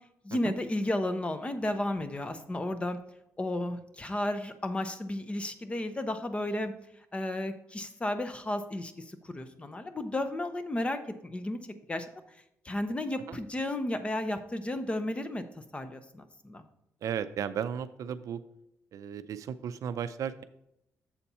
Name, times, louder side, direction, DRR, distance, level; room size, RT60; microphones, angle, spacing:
voice 1, 0.2-3.0 3.4-6.7 7.1-11.6 11.9-12.1 12.6-15.4 15.7-16.6, left 1 dB, 20° left, 10 dB, 0.7 m, -33 dB
voice 2, 17.0-18.4 18.9-20.4, right 8 dB, 70° right, 13 dB, 0.4 m, -35 dB
7.2 x 4.2 x 5.4 m, 0.80 s
cardioid pair, 110°, 6 cm